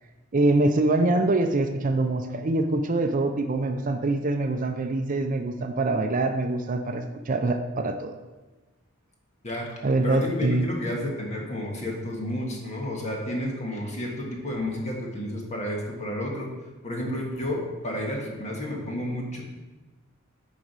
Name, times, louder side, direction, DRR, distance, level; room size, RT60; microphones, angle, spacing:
voice 1, 0.3-8.1 9.8-10.7, right 2 dB, 40° right, 7 dB, 0.5 m, -24 dB
voice 2, 9.4-9.8 10.0-16.5 16.8-19.4, left 1 dB, 35° left, -1 dB, 1.6 m, -31 dB
9.5 x 4.9 x 4.7 m, 1.2 s
head